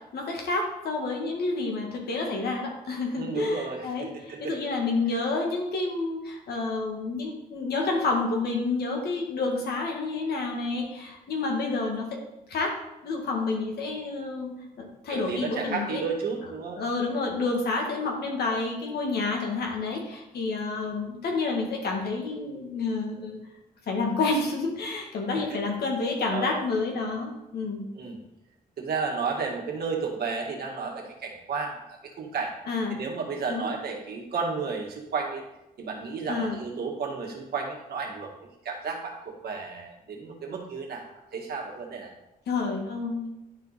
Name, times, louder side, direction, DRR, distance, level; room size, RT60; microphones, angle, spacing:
voice 1, 0.1-12.2 12.5-12.7 13.0-16.0 16.7-23.4 23.9-27.8 32.7-33.0 33.5-33.7 36.3-36.6 42.5-43.3, left 3 dB, 90° left, 1 dB, 1.8 m, -29 dB
voice 2, 3.2-4.5 15.1-16.8 25.5-25.6 26.3-26.5 28.0-28.2 28.8-32.5 32.9-35.4 35.8-38.3 38.6-41.0 41.3-42.1, right 5 dB, 80° right, 0 dB, 1.7 m, -32 dB
11.0 x 4.7 x 4.1 m, 0.90 s
cardioid pair, 115°, 16 cm